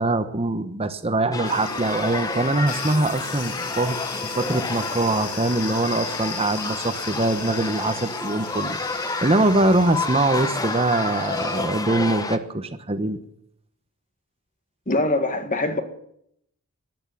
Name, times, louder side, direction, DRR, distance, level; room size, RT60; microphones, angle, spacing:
voice 1, 0.0-13.2, right 2 dB, 25° right, 1.0 m, -23 dB
sound 1, 1.3-12.4, left 3 dB, 15° left, 1.1 m, -30 dB
sound 2, 1.4-11.6, left 6 dB, 80° left, 2.5 m, -36 dB
voice 2, 14.9-15.8, left 2 dB, 35° left, 1.9 m, -23 dB
14.0 x 11.0 x 9.2 m
head